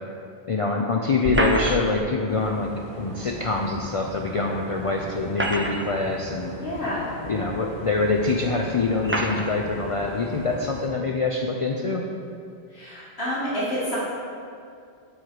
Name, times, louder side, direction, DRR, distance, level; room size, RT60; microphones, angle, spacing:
voice 1, 0.5-2.7 3.0-6.5 7.2-12.1, left 3 dB, 55° left, 0 dB, 0.3 m, -25 dB
sound 1, 1.2-2.1 3.8-3.9 5.1-6.0 6.9-7.0 8.0-8.1 9.0-9.5, right 1 dB, 20° right, 0.3 m, -26 dB
sound 2, 2.3-10.9, equal, 50° right, 2.0 m, -39 dB
voice 2, 6.6-7.1 12.7-14.0, equal, 75° left, -10 dB, 2.2 m, -28 dB
7.3 x 4.8 x 4.6 m, 2.3 s
omnidirectional pair, 1.1 m